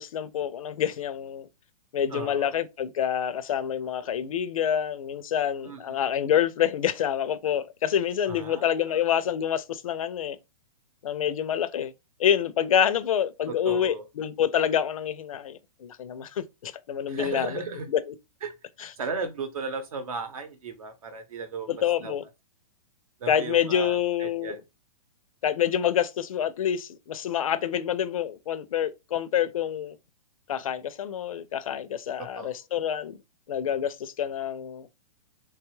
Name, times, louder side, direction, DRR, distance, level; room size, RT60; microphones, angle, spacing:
voice 1, 0.0-1.5 1.9-10.4 11.0-11.9 12.2-17.6 17.9-18.1 18.8-18.9 21.7-22.2 23.3-24.6 25.4-30.0 30.5-33.2 33.5-34.9, left 9 dB, 55° left, 0.4 m, -27 dB
voice 2, 2.1-2.5 5.6-6.0 8.3-9.0 13.5-14.0 17.1-17.9 18.4-18.5 19.0-21.7 22.0-22.1 23.2-24.6 32.2-32.6, right 4 dB, 60° right, 0.9 m, -35 dB
3.2 x 2.2 x 3.0 m
hypercardioid pair, 170°, 21 cm